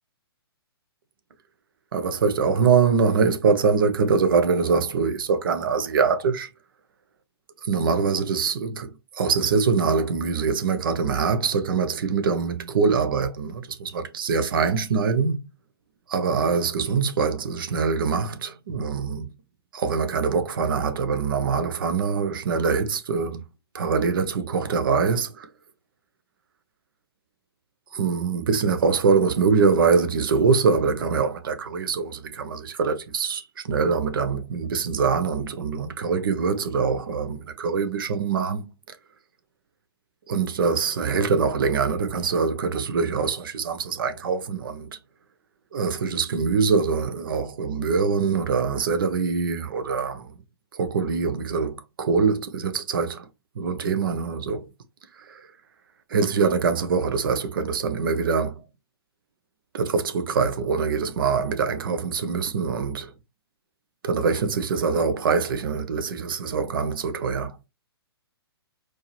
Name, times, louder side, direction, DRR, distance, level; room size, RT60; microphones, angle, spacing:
voice 1, 1.9-6.5 7.6-15.4 16.1-19.3 19.7-23.4 23.7-25.5 27.9-38.7 40.3-44.9 45.7-50.3 50.7-53.3 53.6-54.7 55.2-55.5 56.1-58.6 59.7-63.1 64.0-67.6, right 5 dB, 55° right, 0.8 m, -24 dB
4.5 x 3.0 x 3.0 m
figure-of-eight pair, 120°, 13 cm